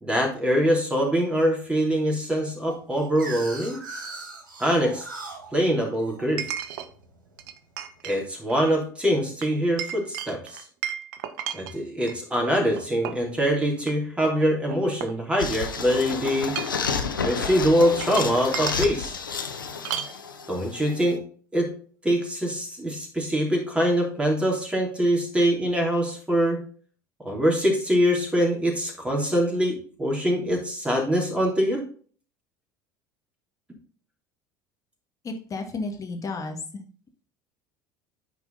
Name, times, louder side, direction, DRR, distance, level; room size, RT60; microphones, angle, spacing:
voice 1, 0.0-3.8 4.6-5.1 5.5-6.5 8.0-10.6 11.5-16.5 17.2-19.1 20.5-21.2 21.5-21.7 22.0-26.6 27.2-31.8, equal, 10° right, 0 dB, 3.2 m, -24 dB
sound 1, 2.7-7.5, right 3 dB, 85° right, 2.0 m, -40 dB
Chink clink, 2.9-3.0 6.4-6.9 7.4-8.2 8.5-8.7 9.4-12.2 12.8-13.3 13.8-13.9 14.2-15.7 16.4-16.9 17.8-19.0 19.8-20.2, right 9 dB, 65° right, 0.8 m, -34 dB
sound 2, 15.4-21.1, left 5 dB, 90° left, 0.9 m, -31 dB
voice 2, 35.2-36.6, left 3 dB, 30° left, 4 dB, 1.9 m, -32 dB
9.3 x 4.7 x 4.0 m, 0.43 s
figure-of-eight pair, 65°, 11 cm